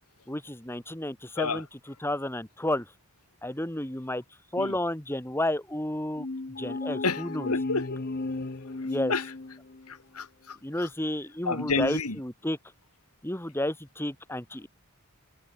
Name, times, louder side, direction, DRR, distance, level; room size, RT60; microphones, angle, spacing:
voice 1, 0.3-2.9 3.4-4.2 4.5-6.3 6.6-7.5 8.8-9.1 10.6-12.6 13.2-14.7, left 1 dB, 10° left, 1.9 m, -31 dB
sound 1, 6.2-9.9, left 2 dB, 45° left, 0.8 m, -34 dB
voice 2, 7.0-8.0 9.1-9.2 9.9-10.9 11.5-12.2, left 4 dB, 90° left, 2.6 m, -30 dB
head